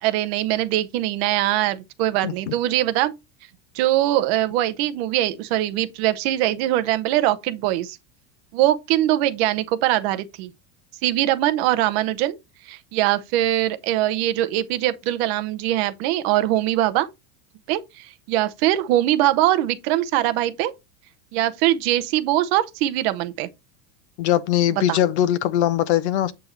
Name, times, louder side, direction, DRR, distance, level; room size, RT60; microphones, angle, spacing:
voice 1, 0.0-3.1 3.7-8.0 8.5-10.5 11.0-12.4 12.7-17.1 17.7-20.7 21.3-23.5 24.9-25.0, right 14 dB, 40° right, 0.7 m, -22 dB
voice 2, 2.2-2.5 24.2-26.3, left 12 dB, 45° left, 0.4 m, -21 dB
7.7 x 6.9 x 3.1 m
supercardioid pair, 180°, 49 cm